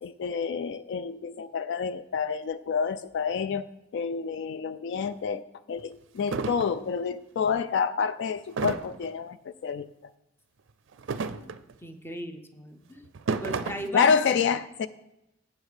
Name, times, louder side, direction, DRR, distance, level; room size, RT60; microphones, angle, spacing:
voice 1, 0.0-3.7 3.9-9.9 13.9-14.9, left 6 dB, 60° left, 13 dB, 0.3 m, -28 dB
sound 1, 5.0-5.1 5.8-5.9 6.3-6.7 8.6-9.1 10.9-11.7 13.0-13.9, right 4 dB, 65° right, 0.4 m, -31 dB
voice 2, 11.8-13.1 13.4-14.1, equal, 10° left, 7 dB, 0.6 m, -37 dB
8.2 x 7.1 x 4.9 m, 0.91 s
head